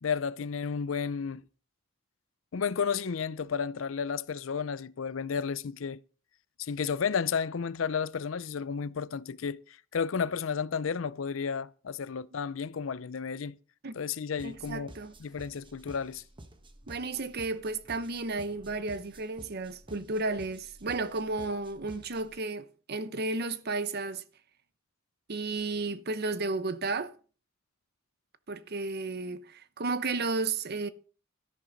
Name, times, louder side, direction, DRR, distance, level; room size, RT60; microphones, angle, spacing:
voice 1, 0.0-1.4 2.5-6.0 6.6-13.6 13.9-14.9 15.2-16.2, left 6 dB, 85° left, 0.5 m, -32 dB
sound 1, 14.4-22.4, right 1 dB, 25° right, 1.3 m, -52 dB
voice 2, 14.4-15.1 16.9-24.2 25.3-27.1 28.5-30.9, right 3 dB, 55° right, 0.9 m, -33 dB
13.0 x 10.5 x 4.0 m
head